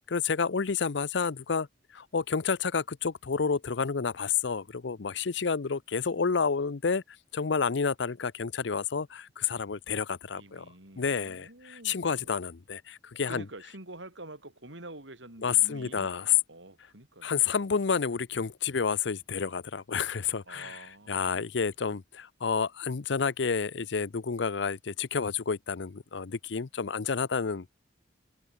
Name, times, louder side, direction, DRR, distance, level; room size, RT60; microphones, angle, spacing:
voice 1, 0.1-1.7 1.9-10.6 11.0-13.5 15.4-16.3 17.2-27.7, left 6 dB, 65° left, 0.6 m, -30 dB
voice 2, 10.4-12.4 13.2-16.1 16.5-17.3 20.5-21.5, right 2 dB, 70° right, 5.4 m, -47 dB
head